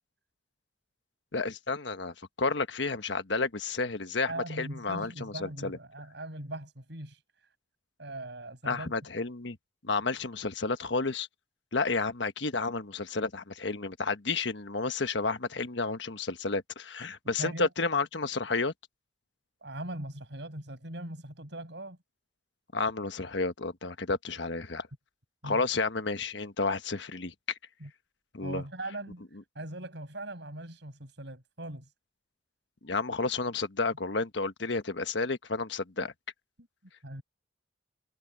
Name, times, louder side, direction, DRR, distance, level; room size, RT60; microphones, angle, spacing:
voice 1, 1.3-4.3 4.6-5.8 8.7-9.6 9.8-11.3 11.7-18.7 22.7-24.9 25.4-27.3 28.3-28.6 32.8-36.1, left 3 dB, 70° left, 1.3 m, -31 dB
voice 2, 4.3-7.2 8.0-8.9 17.4-17.7 19.6-22.0 25.4-25.7 27.8-27.9 28.4-29.2 29.5-31.9 36.6-36.7 37.0-37.2, right 1 dB, 65° right, 7.5 m, -40 dB
head